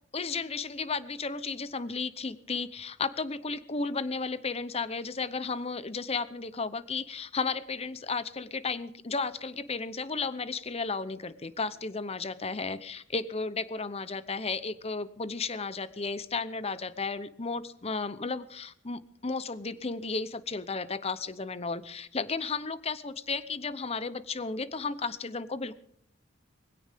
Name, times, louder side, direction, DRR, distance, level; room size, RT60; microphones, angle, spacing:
voice 1, 0.1-25.7, left 4 dB, 30° left, 15 dB, 0.9 m, -34 dB
21.0 x 16.5 x 3.7 m, 0.66 s
head